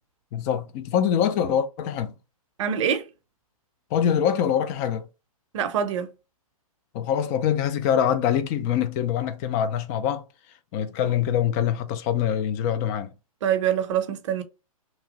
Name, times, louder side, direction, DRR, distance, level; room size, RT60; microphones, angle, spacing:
voice 1, 0.3-2.1 3.9-5.1 6.9-10.3 10.7-13.1, left 9 dB, 30° left, 0.4 m, -24 dB
voice 2, 2.6-3.1 5.5-6.1 13.4-14.4, right 8 dB, 55° right, 0.6 m, -24 dB
2.9 x 2.5 x 2.8 m
hypercardioid pair, 130°, 19 cm